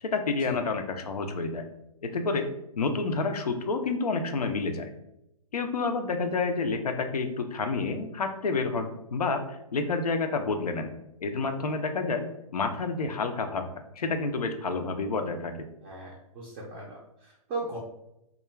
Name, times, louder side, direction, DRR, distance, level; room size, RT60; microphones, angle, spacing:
voice 1, 0.0-1.6 2.0-2.5 2.8-4.9 5.5-10.9 11.2-12.3 12.5-13.6 14.0-15.5, left 4 dB, 90° left, 6 dB, 0.5 m, -29 dB
voice 2, 15.8-17.8, right 3 dB, 15° right, -4 dB, 0.4 m, -38 dB
2.3 x 2.1 x 3.0 m, 0.83 s
hypercardioid pair, 140°, 19 cm